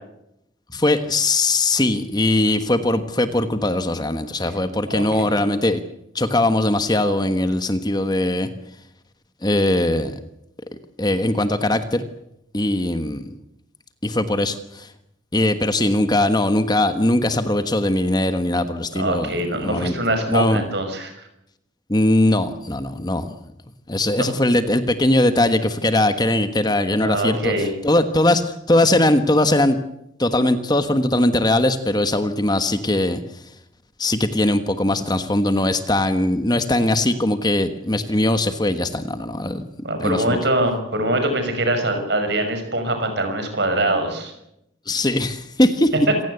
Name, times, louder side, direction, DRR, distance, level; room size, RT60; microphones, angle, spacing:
voice 1, 0.7-5.8 6.1-8.5 9.4-10.2 11.0-12.0 12.5-13.4 14.0-14.9 15.3-20.6 21.9-23.3 23.9-29.8 30.2-33.2 34.0-39.7 40.0-40.4 44.9-45.9, left 1 dB, 20° left, 10 dB, 1.3 m, -20 dB
voice 2, 4.9-5.3 18.9-21.1 24.2-24.3 27.0-27.7 39.8-44.3, right 1 dB, 60° right, 7 dB, 6.2 m, -23 dB
27.0 x 17.0 x 8.1 m, 0.81 s
head